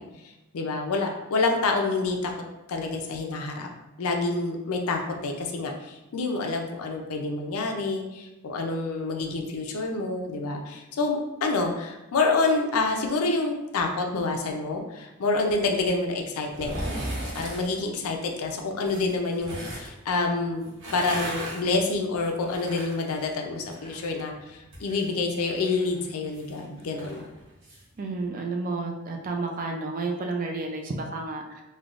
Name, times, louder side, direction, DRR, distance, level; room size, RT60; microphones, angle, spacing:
voice 1, 0.0-2.3 2.7-3.7 4.0-16.7 17.3-27.2, left 3 dB, 70° left, 3 dB, 0.4 m, -28 dB
sound 1, 16.5-17.7 18.8-19.9 20.6-24.1 24.4-27.8 28.2-28.3, right 1 dB, 55° right, 0.9 m, -37 dB
voice 2, 28.0-31.6, right 3 dB, 35° right, 2 dB, 0.3 m, -31 dB
3.3 x 2.2 x 2.4 m, 1.0 s
head